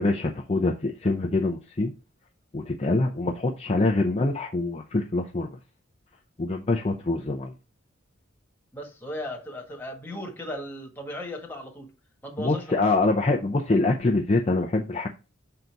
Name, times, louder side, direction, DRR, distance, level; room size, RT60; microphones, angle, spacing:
voice 1, 0.0-1.9 2.5-5.5 6.4-7.5 12.4-15.1, left 2 dB, 30° left, 0.6 m, -25 dB
voice 2, 8.7-11.9 12.2-12.8, left 1 dB, 10° left, 1.5 m, -36 dB
5.7 x 3.9 x 4.6 m
head